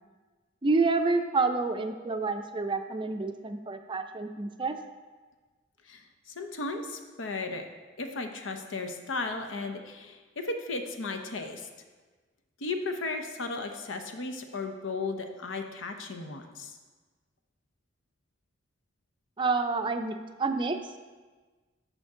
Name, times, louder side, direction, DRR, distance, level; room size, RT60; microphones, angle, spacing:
voice 1, 0.6-4.8 19.4-20.8, right 3 dB, 25° right, 7 dB, 0.4 m, -28 dB
voice 2, 6.3-7.6 8.0-11.7 12.6-16.7, left 3 dB, 85° left, 5 dB, 0.8 m, -35 dB
10.5 x 5.2 x 3.7 m, 1.3 s
head